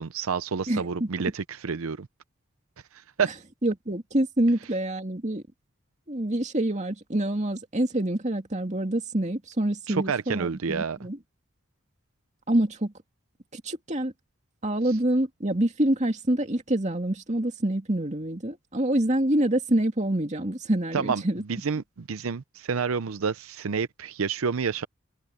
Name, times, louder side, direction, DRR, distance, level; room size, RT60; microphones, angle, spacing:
voice 1, 0.0-2.1 3.2-3.3 9.9-11.0 20.9-21.2 21.5-24.9, right 6 dB, 80° right, 0.6 m, -29 dB
voice 2, 0.7-1.1 3.6-5.4 6.1-11.2 12.5-12.9 13.5-14.1 14.6-21.4, right 1 dB, 35° right, 2.4 m, -26 dB
head